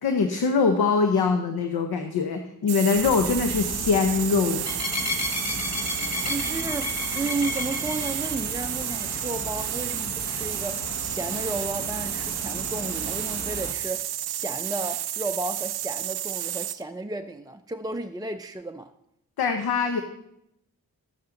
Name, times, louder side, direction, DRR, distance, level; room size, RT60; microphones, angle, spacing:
voice 1, 0.0-4.6 19.4-20.0, left 5 dB, 75° left, 0.9 m, -23 dB
sound 1, 2.7-16.8, right 12 dB, 80° right, 0.5 m, -31 dB
sound 2, 2.9-13.7, left 3 dB, 45° left, 1.4 m, -34 dB
voice 2, 6.2-18.9, right 2 dB, 10° right, 0.4 m, -33 dB
11.5 x 8.8 x 3.8 m
cardioid pair, 55°, 38 cm